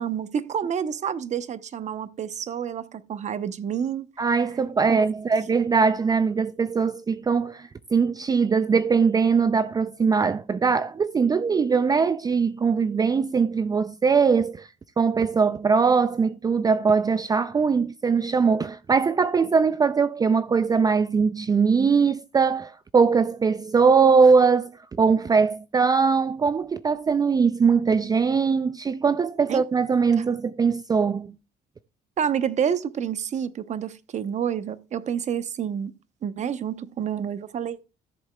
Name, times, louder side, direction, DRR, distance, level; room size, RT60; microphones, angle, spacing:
voice 1, 0.0-4.1 4.9-5.0 29.5-29.6 30.2-30.3 32.2-35.9 36.2-37.8, right 8 dB, 45° right, 0.8 m, -28 dB
voice 2, 4.2-14.7 15.0-24.7 25.0-31.3, right 5 dB, 25° right, 0.4 m, -21 dB
14.0 x 7.7 x 2.3 m
cardioid pair, 110°, 17 cm